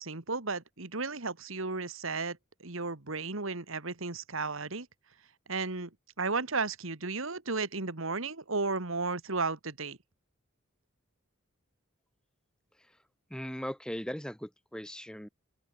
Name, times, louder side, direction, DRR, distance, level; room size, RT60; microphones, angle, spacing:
voice 1, 0.0-4.9 5.5-5.9 6.2-10.0, right 3 dB, 70° right, 2.0 m, -34 dB
voice 2, 13.3-15.3, equal, 5° left, 1.2 m, -38 dB
open air
head